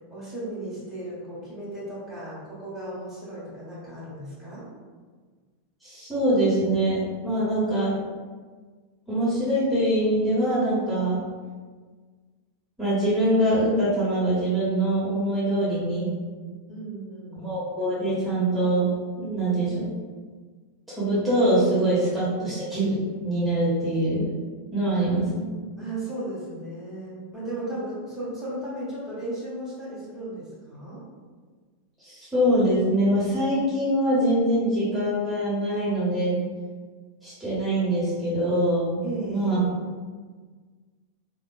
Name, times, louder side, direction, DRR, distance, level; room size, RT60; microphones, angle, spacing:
voice 1, 0.1-4.7 16.7-17.5 24.9-25.2 25.8-31.0 39.0-39.7, right 1 dB, 15° left, -10 dB, 1.4 m, -35 dB
voice 2, 5.8-7.9 9.1-11.2 12.8-16.1 17.4-18.9 19.2-19.9 21.0-24.3 24.7-25.4 32.0-36.4 37.2-39.6, right 1 dB, 5° right, -11 dB, 1.3 m, -24 dB
2.8 x 2.8 x 2.3 m, 1.5 s
figure-of-eight pair, 90°, 0 cm